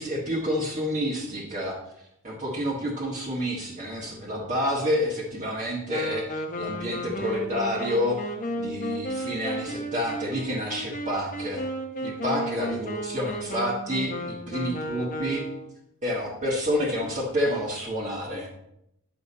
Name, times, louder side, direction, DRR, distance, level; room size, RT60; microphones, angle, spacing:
voice 1, 0.0-1.8 2.2-11.6 12.0-15.4 16.0-18.5, equal, 35° right, -5 dB, 1.6 m, -29 dB
Wind instrument woodwind instrument, 5.9-15.8, equal, 35° left, 1.0 m, -33 dB
10.0 x 6.9 x 4.2 m, 0.79 s
head